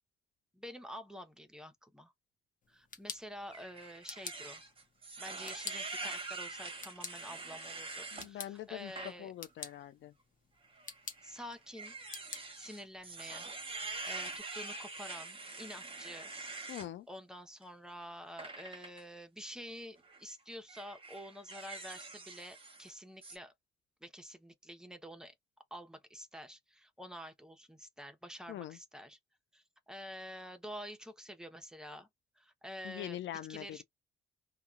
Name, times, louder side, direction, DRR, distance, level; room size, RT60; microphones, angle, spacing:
voice 1, 0.5-2.1 2.7-4.6 5.2-9.3 11.2-12.0 12.6-16.3 16.6-16.8 17.1-23.5 24.0-25.3 25.7-29.2 29.5-32.1 32.4-33.2 33.5-33.8, equal, 5° right, 0.8 m, -48 dB
sound 1, 2.6-14.4, left 5 dB, 45° left, 0.7 m, -50 dB
sound 2, 3.5-8.3 8.8-9.1 9.6-9.7 10.7-16.9 18.4-19.0 20.0-20.2 20.7-22.9 23.2-23.4, right 3 dB, 25° right, 1.1 m, -45 dB
voice 2, 8.1-8.9 9.2-10.1 16.7-17.1 28.5-28.8 32.8-33.8, left 12 dB, 75° left, 0.4 m, -43 dB
2.8 x 2.3 x 2.4 m
cardioid pair, 70°, 20 cm